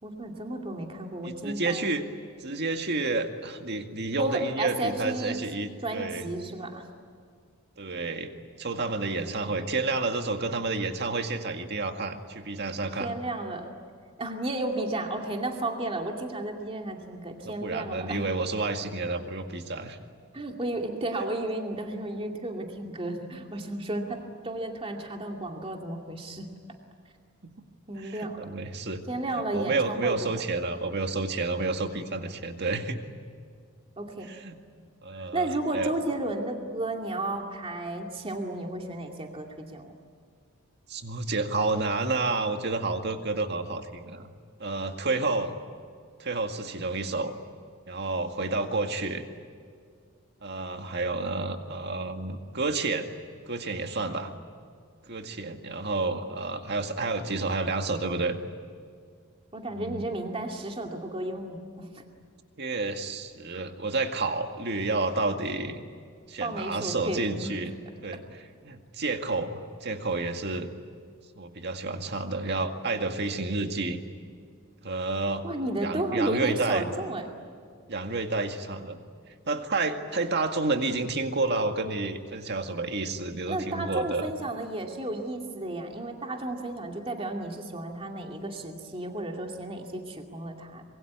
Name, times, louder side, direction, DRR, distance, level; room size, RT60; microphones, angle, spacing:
voice 1, 0.0-2.0 4.2-5.4 5.8-6.9 13.0-13.7 14.2-18.2 20.3-24.2 24.4-26.5 27.9-28.4 29.1-30.2 34.0-34.3 35.3-39.9 59.5-61.9 66.4-67.5 75.4-77.3 83.5-90.8, right 2 dB, 25° right, 2 dB, 2.4 m, -33 dB
voice 2, 1.2-2.0 2.4-6.3 7.8-8.3 8.6-13.1 17.4-20.0 23.5-23.6 28.0-29.0 29.3-33.0 34.2-34.6 35.0-35.9 40.9-44.3 44.6-45.5 46.2-47.3 47.9-49.2 50.4-53.1 53.5-54.3 55.1-58.4 59.7-60.1 62.6-65.8 66.3-67.7 68.0-70.8 71.4-74.0 74.8-75.5 75.8-76.9 77.9-79.0 79.5-84.3, right 3 dB, 50° right, 5 dB, 2.0 m, -30 dB
25.5 x 23.0 x 9.5 m, 2.1 s
head